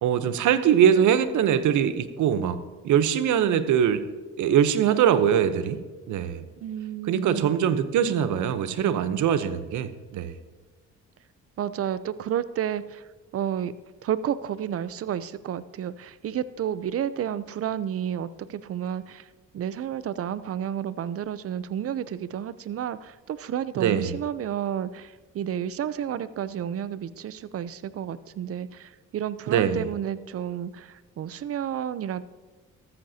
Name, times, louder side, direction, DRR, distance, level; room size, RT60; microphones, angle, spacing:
voice 1, 0.0-4.0 4.4-6.5 7.1-10.3 23.8-24.2 29.5-29.9, right 9 dB, 75° right, 12 dB, 0.9 m, -22 dB
voice 2, 6.6-7.5 11.6-13.0 13.3-13.7 14.0-19.3 19.5-32.2, right 9 dB, 50° right, 15 dB, 0.6 m, -31 dB
14.0 x 13.5 x 2.8 m, 1.3 s
cardioid pair, 90°, 30 cm